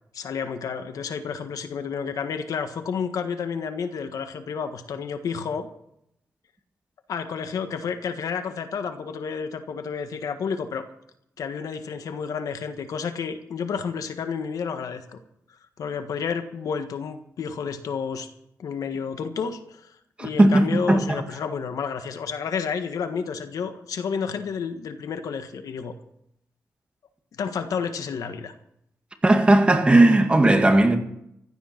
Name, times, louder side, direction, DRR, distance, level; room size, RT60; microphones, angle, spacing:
voice 1, 0.1-5.7 7.1-10.8 11.4-15.2 15.8-18.3 18.6-19.9 20.2-25.9 27.4-28.5, left 6 dB, 80° left, 1.6 m, -30 dB
voice 2, 20.2-21.2 29.2-31.0, right 2 dB, 20° right, 2.0 m, -17 dB
15.5 x 12.5 x 6.0 m
wide cardioid pair, 130°, 6 cm